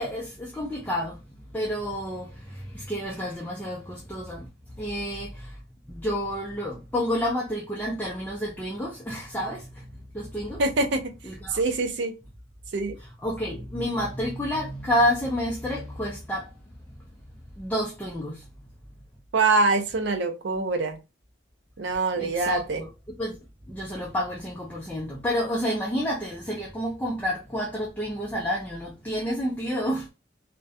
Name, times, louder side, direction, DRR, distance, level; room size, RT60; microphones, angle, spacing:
voice 1, 0.0-4.5 4.8-5.6 5.9-9.9 10.1-10.6 11.2-11.6 13.2-16.5 17.6-18.5 22.2-22.9 23.2-23.4 23.7-30.1, equal, 10° left, 0.4 m, -29 dB
voice 2, 10.6-11.1 11.5-12.1 12.7-13.0 19.3-21.0 21.8-22.8, right 3 dB, 65° right, 0.4 m, -24 dB
2.3 x 2.1 x 2.6 m
head